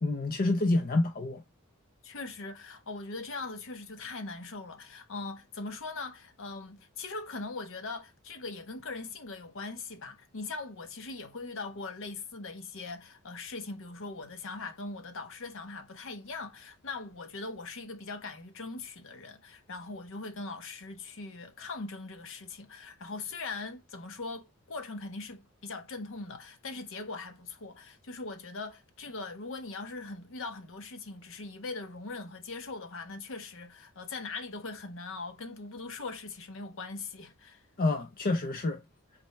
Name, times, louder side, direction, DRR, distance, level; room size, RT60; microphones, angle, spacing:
voice 1, 0.0-1.4 37.8-38.8, left 2 dB, 40° left, 0.5 m, -28 dB
voice 2, 2.0-37.6, left 3 dB, 60° left, 0.9 m, -41 dB
4.2 x 3.2 x 3.0 m
head